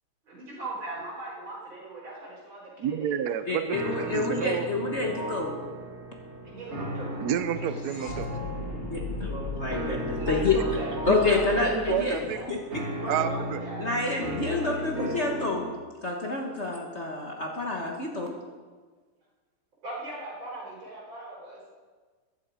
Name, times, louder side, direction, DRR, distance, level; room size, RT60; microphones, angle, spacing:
voice 1, 0.2-3.1 6.4-7.2 10.2-11.0 11.3-12.0 12.3-12.5 13.0-15.1 19.8-21.7, right 2 dB, 60° right, -5 dB, 5.3 m, -40 dB
voice 2, 2.8-4.7 7.2-8.3 11.0-11.2 11.9-12.4 13.1-13.6, right 9 dB, 80° right, 10 dB, 0.8 m, -29 dB
voice 3, 3.5-5.6 8.9-10.6 11.0-12.2 12.5-12.6 13.8-15.7 16.0-18.3, left 3 dB, 35° left, 0 dB, 1.4 m, -28 dB
sound 1, 3.7-15.7, right 1 dB, 30° right, 2.2 m, -36 dB
sound 2, 5.3-13.2, left 2 dB, 75° left, 2.5 m, -38 dB
15.0 x 11.0 x 5.0 m, 1.4 s
omnidirectional pair, 2.4 m